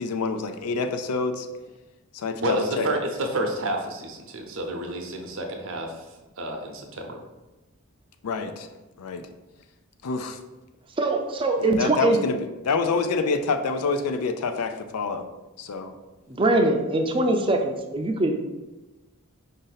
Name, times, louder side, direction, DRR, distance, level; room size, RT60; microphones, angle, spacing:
voice 1, 0.0-1.5 2.1-2.9 8.2-8.7 9.0-9.3 10.0-10.4 11.6-15.3 15.6-15.9, left 4 dB, 90° left, 7 dB, 0.5 m, -27 dB
voice 2, 2.4-5.9 6.4-7.2, right 1 dB, 60° right, 3 dB, 0.7 m, -29 dB
voice 3, 11.0-12.2 16.3-18.4, right 2 dB, 25° right, 4 dB, 0.4 m, -22 dB
5.1 x 2.6 x 3.9 m, 1.1 s
head